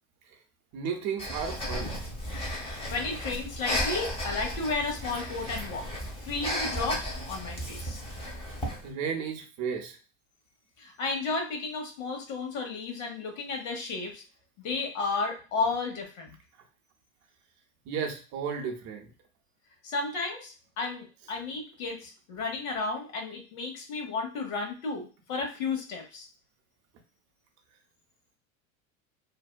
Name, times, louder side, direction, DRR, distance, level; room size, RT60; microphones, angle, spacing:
voice 1, 0.7-2.0 8.8-10.0 17.9-19.1, right 6 dB, 40° right, 3 dB, 0.6 m, -33 dB
Breathing, 1.2-8.9, equal, 15° left, 0.8 m, -34 dB
voice 2, 2.9-5.9 6.2-8.0 10.8-14.2 14.6-16.4 19.8-26.3, left 3 dB, 70° left, 2 dB, 1.1 m, -33 dB
2.6 x 2.2 x 2.2 m, 0.35 s
hypercardioid pair, 80°, 42 cm